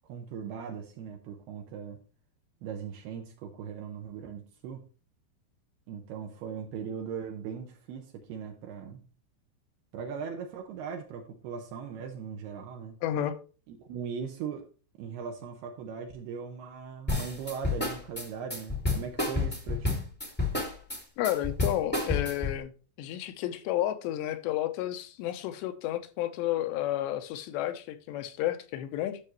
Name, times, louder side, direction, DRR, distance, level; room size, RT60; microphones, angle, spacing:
voice 1, 0.1-2.0 2.6-4.9 5.9-9.0 9.9-13.0 13.7-14.7 15.0-20.1, right 7 dB, 75° right, 2.8 m, -39 dB
voice 2, 13.0-13.4 21.2-22.7 23.0-29.2, left 13 dB, 85° left, 3.0 m, -31 dB
sound 1, 17.1-22.6, left 3 dB, 10° left, 0.6 m, -30 dB
12.0 x 6.6 x 3.1 m
omnidirectional pair, 5.0 m